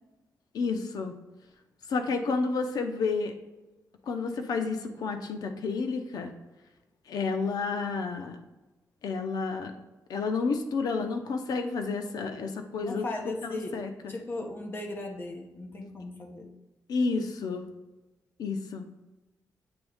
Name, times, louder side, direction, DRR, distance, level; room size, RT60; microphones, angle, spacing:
voice 1, 0.5-1.1 1.9-3.3 4.1-6.3 7.1-8.4 9.0-9.8 10.1-13.1 13.5-14.1 16.9-17.7 18.4-18.8, left 4 dB, 80° left, 6 dB, 0.7 m, -30 dB
voice 2, 12.8-13.8 14.1-16.5, left 2 dB, 35° left, 2 dB, 1.0 m, -37 dB
7.9 x 3.5 x 3.5 m, 1.1 s
wide cardioid pair, 155°, 7 cm